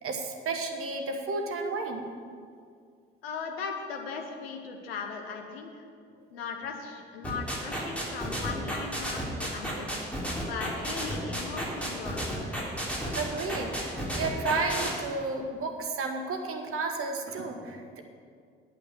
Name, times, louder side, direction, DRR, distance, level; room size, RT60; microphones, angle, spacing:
voice 1, 0.0-2.1 13.1-18.0, right 3 dB, 45° right, 3 dB, 1.5 m, -32 dB
voice 2, 3.2-5.8 6.3-9.9 10.4-12.5, left 5 dB, 75° left, 3 dB, 1.2 m, -38 dB
sound 1, 7.2-14.9, equal, 5° left, 3.5 m, -32 dB
8.8 x 7.4 x 8.3 m, 2.2 s
figure-of-eight pair, 45°, 30 cm